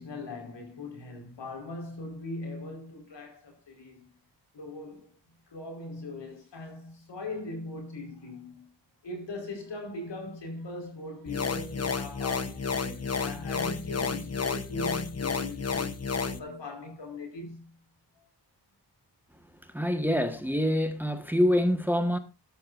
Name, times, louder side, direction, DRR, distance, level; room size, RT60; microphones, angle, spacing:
voice 1, 0.0-4.0 4.5-5.1 5.5-8.7 9.0-17.7 18.1-18.3, left 2 dB, 75° left, 4.9 m, -40 dB
sound 1, 11.3-16.4, left 5 dB, 35° left, 1.1 m, -31 dB
voice 2, 19.7-22.2, equal, 5° right, 1.5 m, -26 dB
13.5 x 12.5 x 2.6 m
wide cardioid pair, 95°, 43 cm